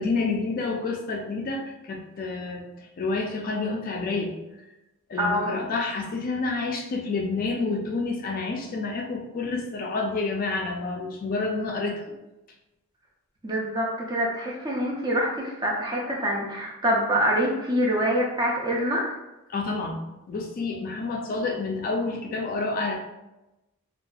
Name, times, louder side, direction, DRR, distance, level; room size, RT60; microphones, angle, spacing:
voice 1, 0.0-4.3 5.1-12.0 19.5-20.0 20.3-23.0, left 3 dB, 45° left, 1 dB, 0.3 m, -29 dB
voice 2, 5.2-5.6 13.4-19.2, equal, 20° right, -3 dB, 0.5 m, -25 dB
2.7 x 2.3 x 2.3 m, 0.98 s
head